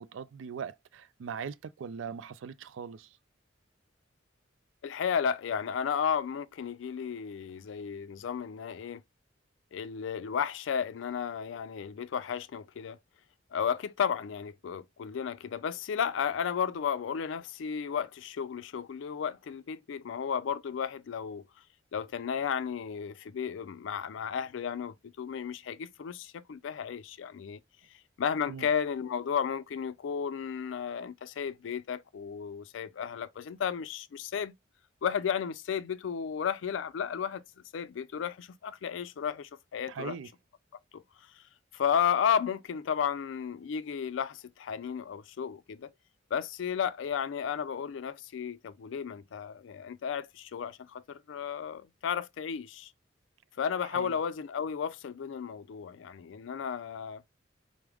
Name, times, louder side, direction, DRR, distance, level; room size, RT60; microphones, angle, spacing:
voice 1, 0.0-3.1 28.5-28.7 39.9-40.3 53.9-54.2, right 6 dB, 90° right, 0.4 m, -40 dB
voice 2, 4.8-9.0 9.7-13.0 13.5-21.5 21.9-27.6 28.2-34.5 35.0-37.4 37.7-40.1 40.9-41.0 41.7-45.9 46.3-52.9 53.6-57.2, left 7 dB, 80° left, 0.4 m, -33 dB
4.7 x 2.1 x 3.4 m
head